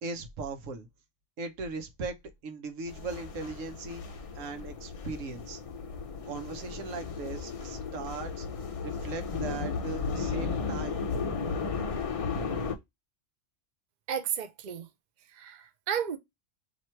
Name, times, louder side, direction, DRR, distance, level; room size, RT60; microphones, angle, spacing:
voice 1, 0.0-0.9 1.4-5.6 6.2-8.5 8.8-11.0, right 3 dB, 90° right, 1.2 m, -39 dB
sound 1, 2.9-12.7, left 5 dB, 40° left, 0.5 m, -35 dB
voice 2, 14.1-14.9 15.3-16.2, right 8 dB, 45° right, 0.6 m, -33 dB
3.0 x 2.9 x 4.2 m
omnidirectional pair, 1.3 m